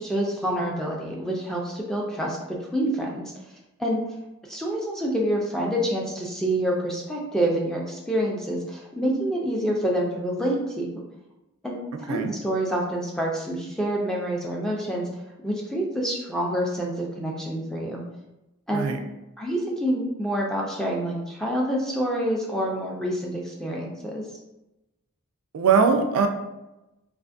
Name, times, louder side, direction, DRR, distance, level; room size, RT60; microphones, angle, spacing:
voice 1, 0.0-3.3 3.8-4.0 4.5-10.9 11.6-11.8 12.1-15.1 15.4-18.0 18.7-18.9 19.4-24.2, right 1 dB, ahead, -2 dB, 0.3 m, -27 dB
voice 2, 25.5-26.3, right 5 dB, 85° right, 6 dB, 0.3 m, -21 dB
2.5 x 2.4 x 2.5 m, 0.96 s
head